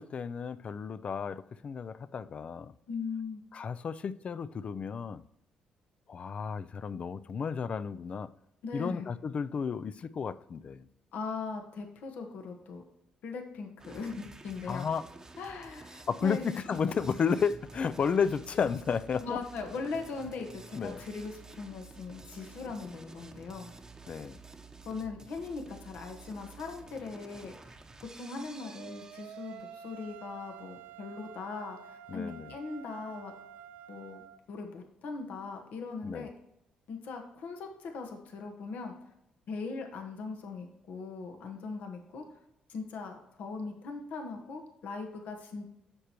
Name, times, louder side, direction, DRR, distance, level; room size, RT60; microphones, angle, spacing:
voice 1, 0.0-2.7 3.5-5.2 6.1-8.3 8.7-10.9 14.7-15.0 16.1-19.4 20.7-21.0 24.1-24.4 32.1-32.6 36.0-36.3, left 6 dB, 45° left, 0.4 m, -32 dB
voice 2, 2.9-3.4 8.6-9.1 11.1-12.8 13.2-14.9 15.4-16.5 19.2-23.7 24.8-27.7 28.2-33.3 33.9-34.2 34.5-36.3 36.9-38.9 39.5-42.2 42.7-45.9, left 4 dB, 75° left, 1.3 m, -40 dB
sound 1, 13.8-29.8, right 3 dB, 20° right, 0.9 m, -51 dB
sound 2, 28.6-34.4, right 9 dB, 85° right, 0.4 m, -49 dB
9.7 x 6.8 x 3.0 m
cardioid pair, 80°, 3 cm